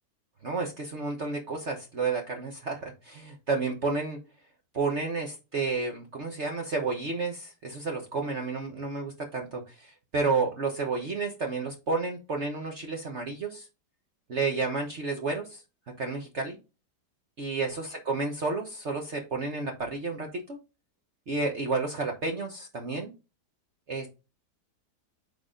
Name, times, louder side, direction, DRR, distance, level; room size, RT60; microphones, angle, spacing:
voice 1, 0.4-4.2 4.7-13.7 14.3-15.6 16.0-16.6 17.4-20.6 21.3-23.1 23.9-24.1, right 4 dB, 45° right, 2 dB, 1.3 m, -31 dB
8.5 x 4.1 x 3.8 m, 0.28 s
omnidirectional pair, 1.8 m